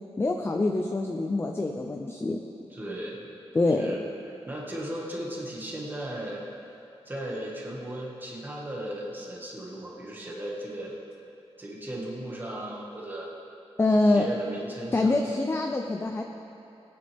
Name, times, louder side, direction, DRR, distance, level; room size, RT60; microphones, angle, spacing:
voice 1, 0.2-2.4 3.5-3.9 13.8-14.3 14.9-16.2, left 2 dB, 20° left, 3 dB, 0.6 m, -25 dB
voice 2, 2.7-3.3 3.7-4.0 4.5-6.4 7.1-11.0 11.6-13.3 14.0-15.4, right 1 dB, 20° right, -4 dB, 1.9 m, -36 dB
20.5 x 9.6 x 3.6 m, 2.8 s
wide cardioid pair, 160°, 11 cm